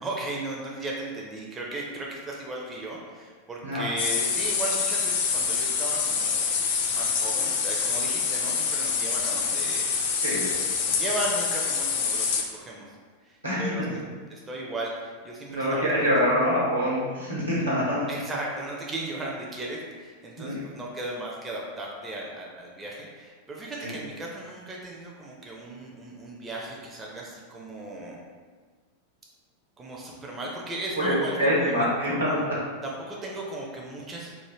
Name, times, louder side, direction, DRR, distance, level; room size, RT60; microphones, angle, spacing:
voice 1, 0.0-6.5 6.9-9.9 10.9-13.0 13.2-13.9 14.3-16.2 18.1-28.2 29.8-32.4 32.8-34.3, right 2 dB, 20° right, -2 dB, 0.4 m, -36 dB
sound 1, 4.0-12.4, left 6 dB, 50° left, 0.4 m, -26 dB
voice 2, 15.5-18.0 20.4-20.6 23.8-24.0 31.0-32.4, equal, 85° right, -7 dB, 1.1 m, -25 dB
3.1 x 2.1 x 3.1 m, 1.5 s
figure-of-eight pair, 90°, 0 cm